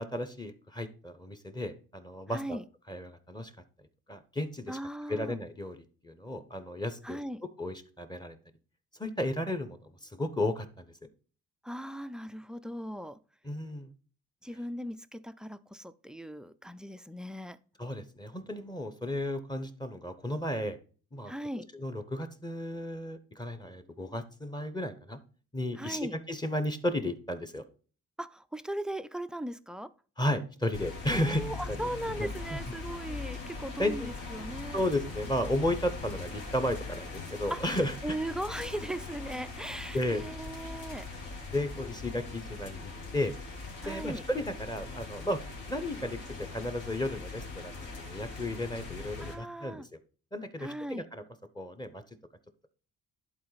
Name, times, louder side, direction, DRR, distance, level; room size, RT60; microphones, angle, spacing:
voice 1, 0.0-2.6 2.9-3.5 4.1-4.8 5.1-7.2 7.6-8.4 9.0-10.9 13.4-13.9 17.8-20.8 21.1-21.3 21.7-25.2 25.5-27.6 30.2-31.8 32.2-32.6 33.8-34.1 34.7-38.2 39.9-40.2 41.5-43.3 43.8-45.4 45.7-49.9 50.3-51.2 51.5-52.0, left 1 dB, 15° left, 10 dB, 0.9 m, -34 dB
voice 2, 2.3-2.6 4.7-5.4 7.0-7.4 11.6-13.2 14.4-17.6 21.3-21.7 25.8-26.2 28.2-29.9 31.1-34.8 37.5-41.1 43.8-44.2 49.2-49.9 50.6-51.1, right 1 dB, 5° right, 12 dB, 0.3 m, -38 dB
sound 1, 30.7-49.3, left 3 dB, 75° left, 2.6 m, -41 dB
11.0 x 4.0 x 4.0 m, 0.40 s
cardioid pair, 90°, 30 cm